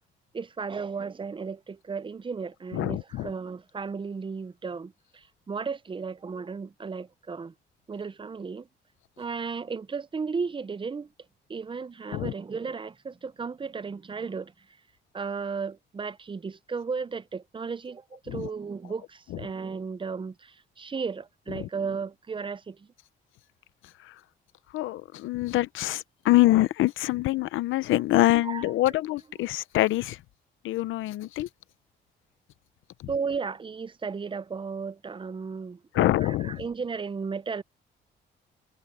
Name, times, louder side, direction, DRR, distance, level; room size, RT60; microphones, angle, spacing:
voice 1, 0.3-7.5 7.9-8.7 9.2-11.1 11.5-14.5 15.1-22.9 28.1-28.6 33.1-37.6, right 5 dB, 25° right, 0.7 m, -34 dB
voice 2, 2.7-3.3 12.1-12.3 18.3-18.5 19.3-19.4 21.5-21.7 24.7-30.2 30.6-31.5 35.9-36.6, left 16 dB, 85° left, 0.8 m, -25 dB
cardioid pair, 90°, 20 cm